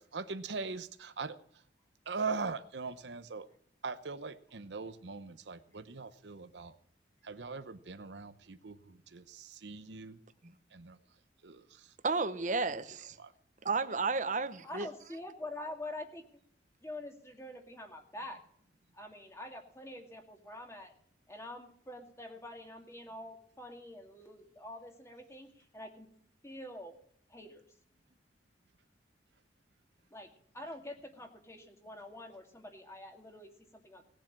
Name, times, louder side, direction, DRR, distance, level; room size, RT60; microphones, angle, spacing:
voice 1, 0.0-1.4 2.1-3.5 3.8-6.8 7.2-10.2 10.7-11.0 11.4-11.9 13.2-13.3, right 4 dB, 75° right, 11 dB, 0.8 m, -41 dB
voice 2, 12.0-13.2 13.6-14.9, right 4 dB, 45° right, 12 dB, 0.9 m, -32 dB
voice 3, 14.6-16.2 16.8-18.4 18.9-20.9 21.3-26.1 26.4-27.0 27.3-27.7 30.1-34.0, left 1 dB, 15° left, 3 dB, 2.3 m, -46 dB
18.5 x 7.6 x 7.4 m, 0.64 s
head